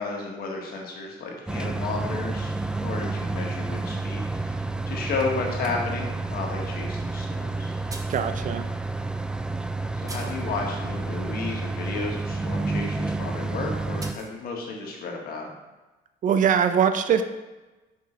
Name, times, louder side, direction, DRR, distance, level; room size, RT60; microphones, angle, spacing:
voice 1, 0.0-7.7 9.9-15.5, left 3 dB, 65° left, 0 dB, 1.6 m, -33 dB
sound 1, 1.5-14.1, right 3 dB, 5° right, 0.3 m, -30 dB
sound 2, 7.9-8.3 9.2-9.3 10.1-10.5 14.0-14.3, right 2 dB, 20° right, 0.8 m, -41 dB
voice 2, 8.1-8.7 16.2-17.2, right 7 dB, 50° right, 9 dB, 0.6 m, -22 dB
6.1 x 5.3 x 4.0 m, 1.1 s
cardioid pair, 110°, 17 cm